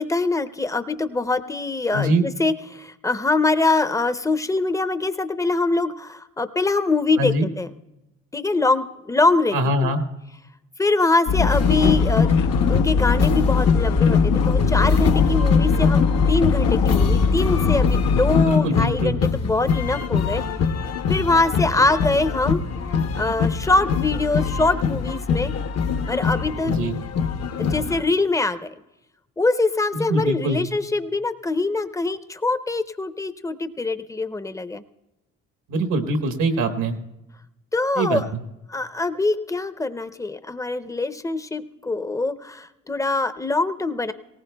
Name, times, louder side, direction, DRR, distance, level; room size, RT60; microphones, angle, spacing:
voice 1, 0.0-7.7 8.3-9.9 10.8-12.3 12.7-20.4 21.1-22.6 22.9-25.5 26.1-26.9 27.6-28.7 29.4-34.8 37.7-38.3 38.7-44.1, left 3 dB, 10° left, 12 dB, 0.6 m, -23 dB
voice 2, 1.9-2.2 7.2-7.5 9.5-10.0 18.5-19.1 26.6-27.0 29.9-30.6 35.7-37.0 38.0-38.2, right 2 dB, 75° right, 7 dB, 1.2 m, -23 dB
sound 1, 11.3-18.4, left 5 dB, 90° left, 0.8 m, -20 dB
sound 2, 11.5-28.0, left 6 dB, 55° left, 0.8 m, -24 dB
19.0 x 18.0 x 2.2 m, 0.97 s
cardioid pair, 90°, 30 cm